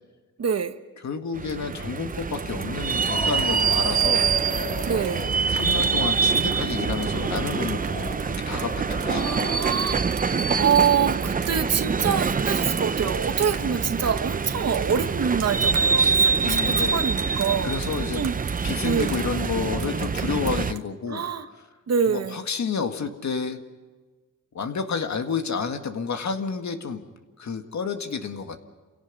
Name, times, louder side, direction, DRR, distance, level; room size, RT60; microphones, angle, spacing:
voice 1, 0.4-0.7 4.9-5.2 9.1-10.0 10.6-17.7 18.1-18.3 18.8-19.2 21.1-21.5 21.9-22.4, right 7 dB, 55° right, 9 dB, 1.3 m, -25 dB
voice 2, 1.0-4.3 5.4-9.4 12.0-12.2 16.0-17.0 17.6-18.2 18.6-21.3 21.5-21.6 22.1-23.6 24.5-27.1 27.4-28.6, left 5 dB, 60° left, 6 dB, 2.0 m, -30 dB
sound 1, 1.3-20.7, right 5 dB, 25° right, 0.6 m, -25 dB
sound 2, 1.5-20.8, right 7 dB, 70° right, 1.6 m, -44 dB
sound 3, 2.6-10.1 10.3-14.2, left 1 dB, 25° left, 3.2 m, -37 dB
28.5 x 17.5 x 5.4 m, 1.3 s
cardioid pair, 95°, 31 cm